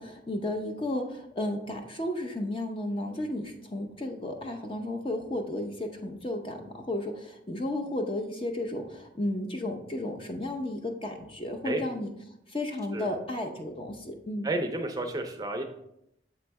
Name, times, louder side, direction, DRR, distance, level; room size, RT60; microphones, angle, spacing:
voice 1, 0.0-12.1 12.5-14.5, left 1 dB, 30° left, 4 dB, 0.6 m, -33 dB
voice 2, 14.4-15.6, right 1 dB, 20° right, 4 dB, 0.5 m, -31 dB
7.7 x 3.2 x 4.6 m, 0.79 s
head